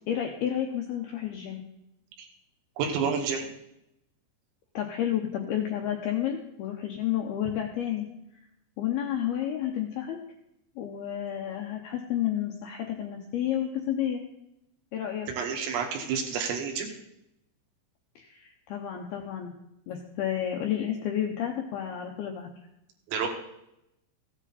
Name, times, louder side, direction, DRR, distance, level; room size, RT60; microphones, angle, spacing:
voice 1, 0.1-1.6 4.7-8.1 8.8-10.2 10.8-14.2 14.9-15.3 18.2-19.5 19.9-22.5, left 10 dB, 80° left, 1 dB, 2.3 m, -31 dB
voice 2, 2.8-3.5 15.3-16.9 23.1-23.3, right 6 dB, 85° right, 2 dB, 4.4 m, -29 dB
15.5 x 9.7 x 4.2 m, 0.82 s
omnidirectional pair, 5.8 m